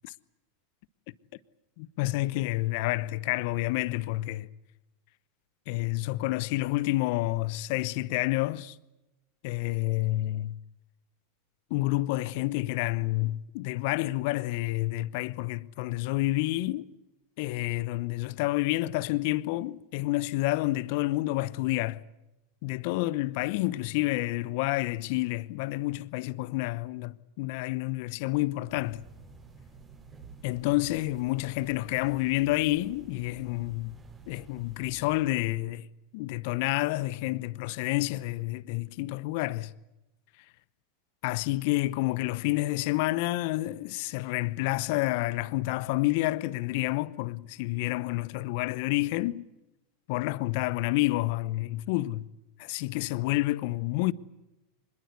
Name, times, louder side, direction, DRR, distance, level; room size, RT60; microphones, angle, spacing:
voice 1, 1.8-4.5 5.7-8.8 9.4-10.6 11.7-16.9 17.4-22.0 22.6-29.0 30.4-34.0 34.3-35.9 36.1-39.7 41.2-49.5 50.1-52.3 52.6-54.1, left 19 dB, 60° left, 0.8 m, -29 dB
sound 1, 28.6-35.4, right 4 dB, 30° right, 7.1 m, -51 dB
25.0 x 22.0 x 8.2 m
hypercardioid pair, 95°, 0 cm